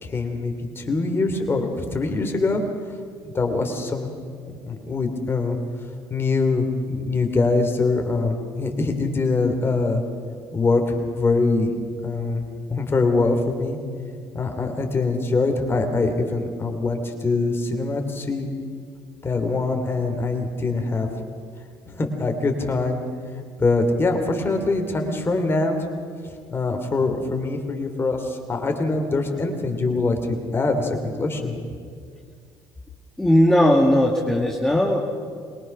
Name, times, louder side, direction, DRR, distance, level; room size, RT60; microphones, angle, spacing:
voice 1, 0.0-2.6 3.3-4.2 4.7-5.6 6.1-10.0 10.5-11.7 12.0-13.8 14.3-18.5 19.2-21.1 21.9-23.0 23.6-25.8 26.5-31.6, left 3 dB, 25° left, 4 dB, 3.1 m, -23 dB
voice 2, 33.2-35.0, left 1 dB, 5° left, -2 dB, 1.9 m, -18 dB
22.5 x 19.5 x 6.0 m, 2.1 s
supercardioid pair, 90°, 9 cm